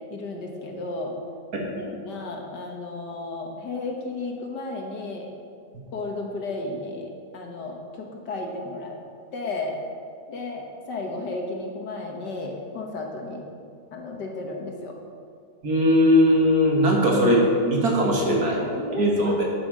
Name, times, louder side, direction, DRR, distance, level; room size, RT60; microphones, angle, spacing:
voice 1, 0.1-1.2 1.6-5.3 5.9-9.0 9.3-9.8 10.3-13.4 13.9-15.0 18.6-19.4, left 2 dB, 70° left, 1 dB, 2.0 m, -33 dB
voice 2, 15.6-18.6 19.0-19.5, equal, 55° right, -1 dB, 2.3 m, -19 dB
12.0 x 9.2 x 5.0 m, 2.3 s
omnidirectional pair, 1.9 m